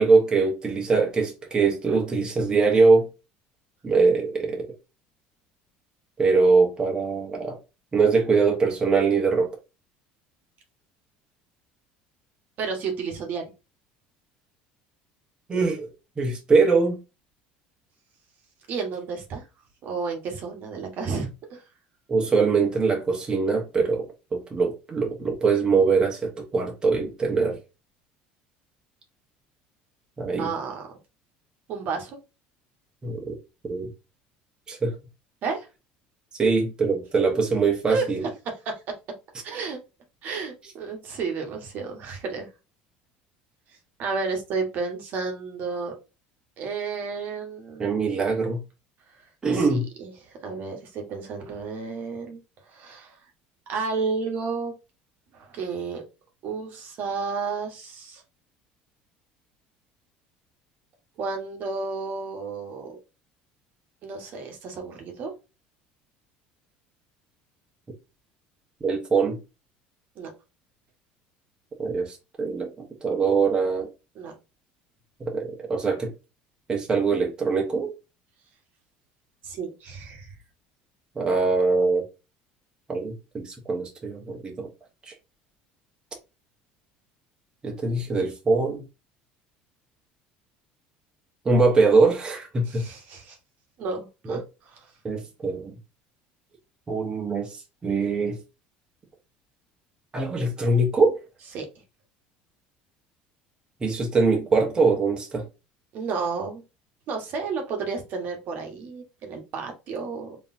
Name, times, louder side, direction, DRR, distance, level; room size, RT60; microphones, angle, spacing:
voice 1, 0.0-3.1 3.8-4.7 6.2-7.6 7.9-9.5 15.5-15.9 16.2-17.0 22.1-24.1 24.3-27.6 30.2-30.5 33.0-33.4 33.7-33.9 34.7-34.9 36.4-38.2 47.8-48.6 49.4-49.8 68.8-69.4 71.8-72.7 73.0-73.9 75.2-76.1 76.7-77.9 81.2-82.0 82.9-84.7 87.6-88.8 91.4-92.8 94.3-94.4 95.0-95.7 96.9-97.5 97.8-98.4 100.1-101.2 103.8-105.4, right 4 dB, 20° right, 1.2 m, -22 dB
voice 2, 12.6-13.4 18.7-19.4 19.8-21.6 30.4-30.9 31.7-32.2 35.4-35.7 37.9-38.0 38.4-38.8 39.4-39.8 40.2-42.5 44.0-45.9 46.6-48.0 49.5-52.4 52.7-53.1 53.7-54.7 55.3-56.0 56.4-58.2 61.2-63.0 64.0-65.3 70.2-70.3 74.1-74.3 79.4-80.3 92.6-93.4 93.8-94.8 101.5-101.7 105.9-106.6 107.1-110.4, right 4 dB, 50° right, 1.3 m, -32 dB
4.0 x 3.3 x 2.7 m
cardioid pair, 125°, 4 cm